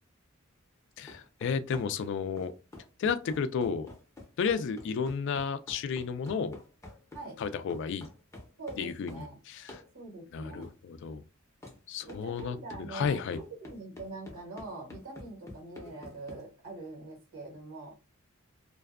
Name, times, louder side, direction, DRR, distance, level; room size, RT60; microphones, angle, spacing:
voice 1, 1.0-2.5 3.0-3.9 4.4-6.6 7.4-8.1 8.8-9.8 10.3-11.2 11.9-13.4, left 6 dB, 60° left, 0.3 m, -32 dB
sound 1, 1.1-9.3 9.7-9.9 10.6-10.8 11.6-11.8 12.1-16.4, left 2 dB, 15° left, 0.6 m, -48 dB
voice 2, 8.6-9.4 9.9-10.7 12.0-18.0, right 3 dB, 80° right, 1.3 m, -43 dB
2.5 x 2.2 x 2.3 m
head